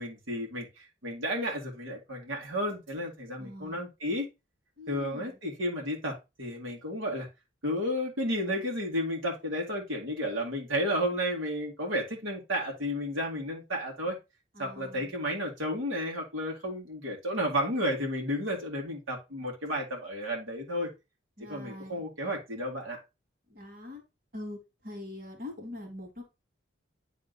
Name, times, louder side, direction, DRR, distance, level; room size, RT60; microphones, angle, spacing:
voice 1, 0.0-4.3 4.9-7.3 7.6-14.2 14.6-20.9 21.5-23.0, equal, 85° right, -1 dB, 2.1 m, -32 dB
voice 2, 3.4-3.8 4.8-5.4 14.6-15.1 21.4-22.0 23.5-24.0 24.3-26.2, left 1 dB, 45° right, 1 dB, 2.2 m, -43 dB
9.7 x 3.6 x 3.9 m, 0.25 s
head